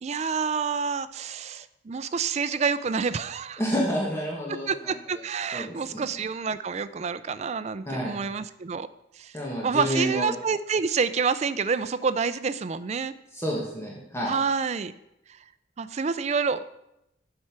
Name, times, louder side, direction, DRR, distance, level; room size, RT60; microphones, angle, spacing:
voice 1, 0.0-3.6 4.7-8.9 9.2-9.3 9.6-13.1 14.2-14.9 15.8-16.7, right 5 dB, 35° right, 13 dB, 0.4 m, -28 dB
voice 2, 3.6-4.9 5.5-6.0 7.9-8.2 9.3-10.3 13.3-14.3, equal, 15° left, -3 dB, 1.4 m, -29 dB
7.7 x 5.6 x 5.9 m, 0.84 s
head